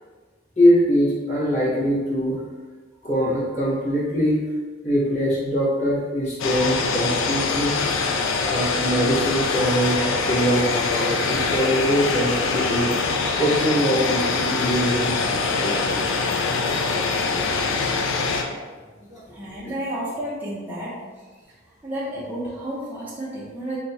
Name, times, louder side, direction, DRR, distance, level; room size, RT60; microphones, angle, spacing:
voice 1, 0.6-2.4 3.0-4.4 4.8-7.8 8.5-12.9 13.4-16.0 19.1-19.2 19.6-19.7, equal, 35° left, -9 dB, 1.1 m, -23 dB
sound 1, 6.4-18.4, left 4 dB, 75° left, 0.4 m, -23 dB
voice 2, 19.3-21.0 21.8-23.8, right 1 dB, 10° right, -7 dB, 0.5 m, -31 dB
2.8 x 2.3 x 3.9 m, 1.4 s
head